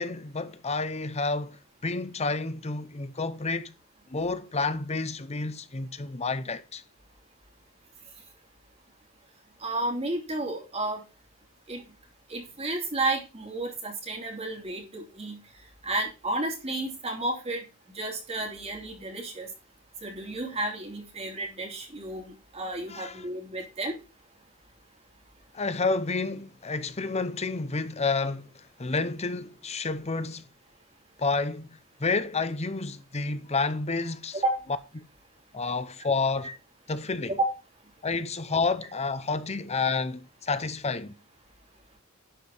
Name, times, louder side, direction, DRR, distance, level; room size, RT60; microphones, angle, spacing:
voice 1, 0.0-3.7 4.1-6.8 22.9-23.3 25.5-30.5 31.2-31.7 32.0-34.4 35.5-36.5 36.9-37.4 38.0-41.1, left 3 dB, 30° left, 0.8 m, -30 dB
voice 2, 9.6-11.0 11.7-11.8 12.3-15.4 15.8-17.6 17.9-19.5 20.0-24.0 34.4-34.6 37.4-37.5, right 2 dB, 30° right, 3.2 m, -32 dB
11.5 x 5.0 x 5.4 m
head